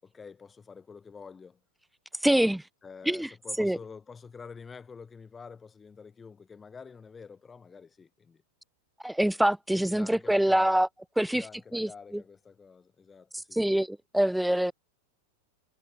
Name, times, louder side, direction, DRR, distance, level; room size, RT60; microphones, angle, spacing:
voice 1, 0.0-1.6 2.3-2.5 2.8-8.4 9.7-10.7 11.3-13.6, left 5 dB, 15° left, 7.9 m, -48 dB
voice 2, 2.2-2.6 3.1-3.3 3.6-3.8 9.0-10.9 11.2-11.5 11.7-12.2 13.5-14.7, right 1 dB, ahead, 0.5 m, -25 dB
figure-of-eight pair, 90°, 0 cm